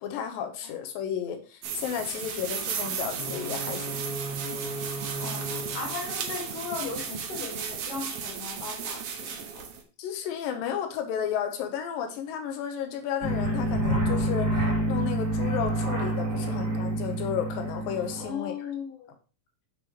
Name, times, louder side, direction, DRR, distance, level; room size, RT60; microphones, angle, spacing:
voice 1, 0.0-4.0 10.0-18.5, left 8 dB, 85° left, 6 dB, 2.7 m, -33 dB
sound 1, 1.6-9.8, right 7 dB, 85° right, 1.3 m, -35 dB
sound 2, 3.2-7.2, right 1 dB, 55° left, 1.7 m, -38 dB
voice 2, 4.6-5.5 5.7-9.7 16.4-16.6 18.2-19.1, left 5 dB, 70° left, 1 dB, 3.3 m, -38 dB
sound 3, 13.2-18.3, right 1 dB, 50° right, 3.2 m, -27 dB
7.4 x 6.4 x 3.0 m, 0.36 s
omnidirectional pair, 4.0 m